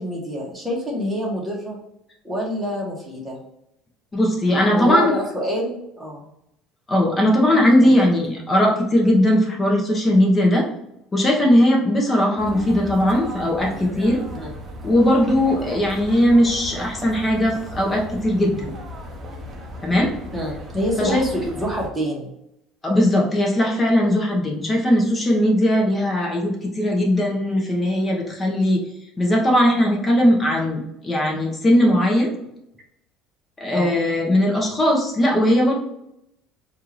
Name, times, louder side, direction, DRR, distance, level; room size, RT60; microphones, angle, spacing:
voice 1, 0.0-1.8 2.2-3.4 4.7-6.3 7.8-7.9 14.3-14.5 20.3-22.3 33.7-34.0, equal, 10° right, -3 dB, 1.2 m, -27 dB
voice 2, 4.1-5.1 6.9-10.7 11.1-14.2 14.8-18.7 19.8-20.1 21.0-21.3 22.8-28.8 29.2-32.3 33.6-35.7, left 1 dB, 15° left, -1 dB, 0.8 m, -19 dB
sound 1, 12.4-21.9, equal, 25° right, 0.7 m, -36 dB
4.4 x 2.5 x 3.2 m, 0.82 s
cardioid pair, 155°, 0 cm